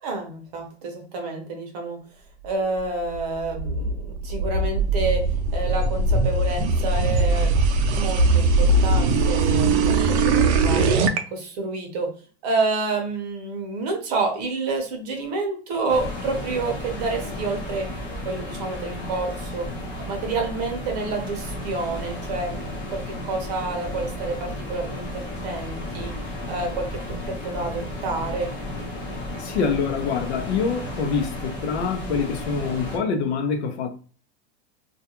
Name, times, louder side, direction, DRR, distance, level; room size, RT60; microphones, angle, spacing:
voice 1, 0.0-2.0 2.4-5.2 5.5-10.9 11.3-12.1 12.4-17.9 18.2-19.7 20.0-26.2 26.5-28.5, right 3 dB, 40° right, 0.6 m, -29 dB
sound 1, 3.1-11.2, right 3 dB, 85° right, 0.5 m, -20 dB
sound 2, 15.9-33.0, left 1 dB, 25° left, 0.5 m, -33 dB
voice 2, 29.4-33.9, left 5 dB, 85° left, 0.7 m, -25 dB
2.4 x 2.2 x 2.8 m
supercardioid pair, 175°, 32 cm